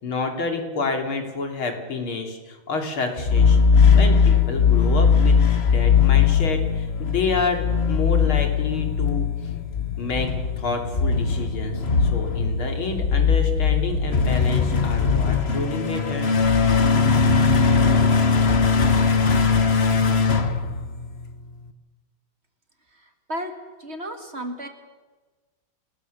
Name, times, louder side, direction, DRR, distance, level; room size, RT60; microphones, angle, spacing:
voice 1, 0.0-9.6 10.0-10.3 10.6-16.3, left 3 dB, 90° left, 4 dB, 3.9 m, -29 dB
sound 1, 3.2-21.3, left 5 dB, 35° left, 1.3 m, -20 dB
voice 2, 23.0-23.5 23.8-24.7, equal, 30° right, 6 dB, 2.2 m, -33 dB
29.0 x 20.0 x 6.9 m, 1.3 s
omnidirectional pair, 2.2 m